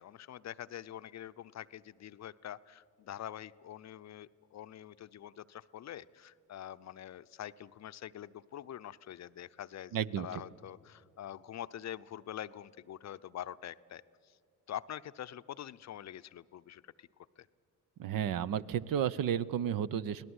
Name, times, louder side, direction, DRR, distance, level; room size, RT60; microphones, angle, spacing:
voice 1, 0.0-14.4 14.7-17.5, left 11 dB, 45° left, 14 dB, 0.6 m, -45 dB
voice 2, 9.9-10.4 18.0-20.2, right 9 dB, 60° right, 15 dB, 0.8 m, -32 dB
24.0 x 17.5 x 8.0 m, 2.4 s
hypercardioid pair, 55°, 38 cm